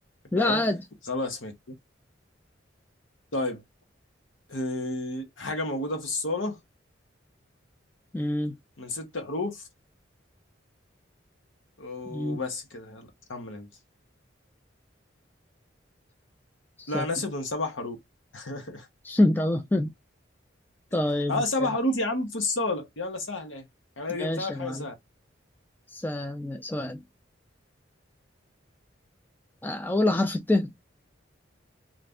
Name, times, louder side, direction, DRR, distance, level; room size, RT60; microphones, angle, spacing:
voice 1, 0.3-0.8 8.1-8.6 12.1-12.4 16.8-17.1 19.0-19.9 20.9-21.4 24.1-24.9 25.9-27.0 29.6-30.7, left 1 dB, 10° left, 0.3 m, -26 dB
voice 2, 1.1-1.5 3.3-3.6 4.5-6.6 8.8-9.6 11.8-13.7 16.9-18.0 18.3-18.9 21.3-23.7 24.0-24.9, left 2 dB, 85° left, 1.0 m, -31 dB
2.6 x 2.4 x 3.4 m
head